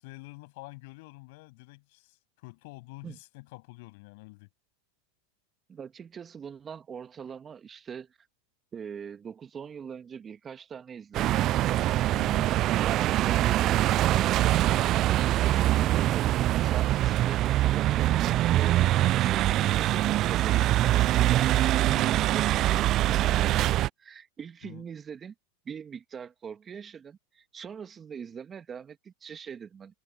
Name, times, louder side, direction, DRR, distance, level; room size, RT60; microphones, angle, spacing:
voice 1, 0.0-4.5 12.1-12.6 21.8-22.1 24.6-24.8, left 25 dB, 60° left, 7.7 m, -47 dB
voice 2, 5.7-8.2 8.7-11.4 12.8-13.8 14.1-18.9 19.1-21.5 21.9-25.3 25.7-30.0, right 7 dB, 25° right, 2.2 m, -42 dB
sound 1, 11.1-23.9, right 14 dB, 45° right, 0.4 m, -24 dB
hypercardioid pair, 100°, 0 cm